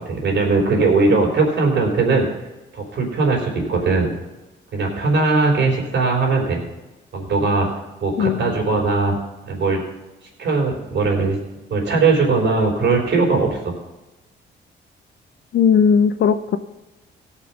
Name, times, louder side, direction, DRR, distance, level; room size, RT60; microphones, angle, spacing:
voice 1, 0.0-2.3 2.7-4.1 4.7-6.6 7.1-7.7 8.0-9.2 9.5-9.8 10.4-11.4 11.7-13.7, right 3 dB, 60° right, 0 dB, 4.2 m, -19 dB
voice 2, 8.2-8.5 15.5-16.6, left 7 dB, 65° left, 10 dB, 0.7 m, -17 dB
16.5 x 5.8 x 5.9 m, 1.1 s
cardioid pair, 90°, 20 cm